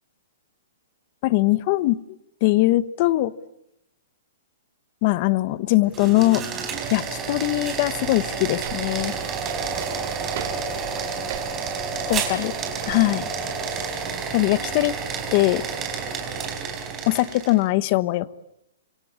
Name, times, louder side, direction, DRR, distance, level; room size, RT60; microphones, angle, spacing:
voice 1, 1.2-2.0 2.4-3.3 5.0-6.4 6.9-9.1 12.1-12.5 12.9-13.3 14.3-15.0 15.3-15.6 17.1-18.3, left 18 dB, 35° left, 17 dB, 1.0 m, -21 dB
sound 1, 5.8-17.6, right 5 dB, 15° right, 4.2 m, -30 dB
sound 2, 7.8-13.0, right 11 dB, 45° right, 3.0 m, -40 dB
26.0 x 25.5 x 8.6 m, 0.80 s
hypercardioid pair, 170°, 0 cm